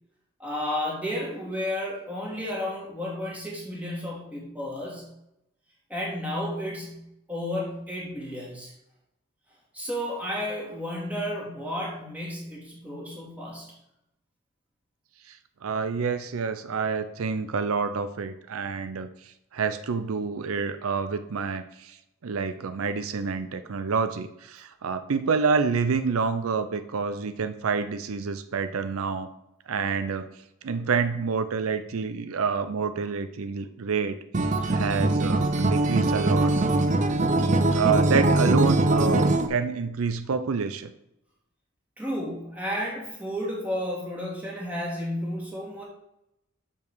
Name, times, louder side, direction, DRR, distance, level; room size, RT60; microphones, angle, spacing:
voice 1, 0.4-5.1 5.9-7.0 7.3-8.7 9.7-13.7 34.6-34.8 42.0-45.8, left 1 dB, 5° right, -4 dB, 2.3 m, -32 dB
voice 2, 15.6-22.0 22.2-29.3 29.7-30.3 30.6-36.5 37.7-40.9, right 5 dB, 80° right, 11 dB, 0.5 m, -28 dB
Acoustic guitar, 34.3-39.5, right 2 dB, 35° right, 0.6 m, -22 dB
6.9 x 5.7 x 6.2 m, 0.84 s
head